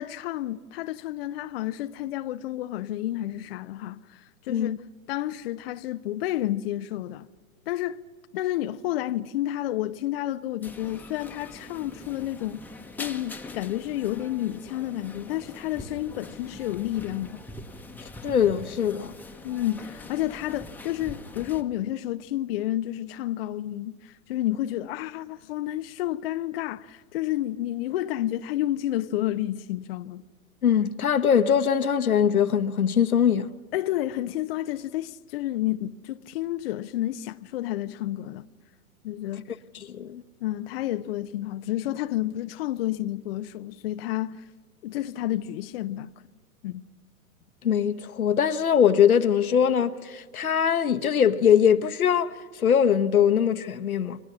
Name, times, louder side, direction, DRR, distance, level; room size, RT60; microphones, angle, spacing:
voice 1, 0.0-4.7 5.1-7.3 7.7-8.0 8.3-12.6 13.0-17.4 19.4-30.2 33.7-38.5 39.0-39.6 40.4-44.5 44.8-46.1 46.6-46.8, left 14 dB, 45° left, 0.6 m, -30 dB
sound 1, 10.6-21.6, left 2 dB, 5° left, 1.1 m, -43 dB
voice 2, 18.2-19.1 30.6-33.5 39.9-40.2 47.6-54.2, left 8 dB, 75° left, 1.2 m, -22 dB
29.5 x 24.5 x 6.1 m
figure-of-eight pair, 110°, 43 cm